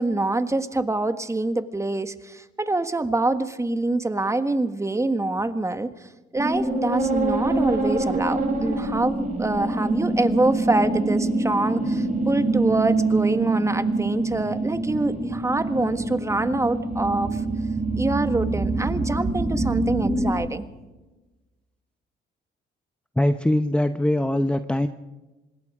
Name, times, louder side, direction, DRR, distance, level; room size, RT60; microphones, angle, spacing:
voice 1, 0.0-5.9 6.3-17.4 17.9-20.6, right 2 dB, 15° right, 10 dB, 1.6 m, -25 dB
sound 1, 6.3-20.3, right 2 dB, 40° right, 6.5 m, -25 dB
voice 2, 23.2-24.9, left 1 dB, 5° left, 9 dB, 0.8 m, -22 dB
25.5 x 20.5 x 5.0 m, 1.1 s
cardioid pair, 90°, 20 cm